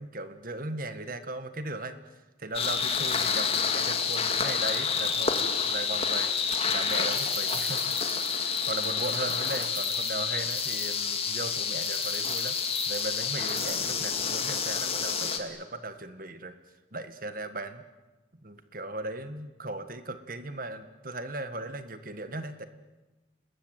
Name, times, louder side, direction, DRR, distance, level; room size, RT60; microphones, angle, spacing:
voice 1, 0.0-6.3 6.7-7.9 8.4-12.6 12.9-16.6 16.9-17.8 18.3-22.7, right 2 dB, 50° right, 10 dB, 1.8 m, -37 dB
sound 1, 2.5-15.4, left 6 dB, 35° left, 2.4 m, -29 dB
sound 2, 6.9-11.0 11.8-13.9, right 7 dB, 80° right, 7.5 m, -42 dB
29.5 x 20.0 x 9.2 m, 1.1 s
head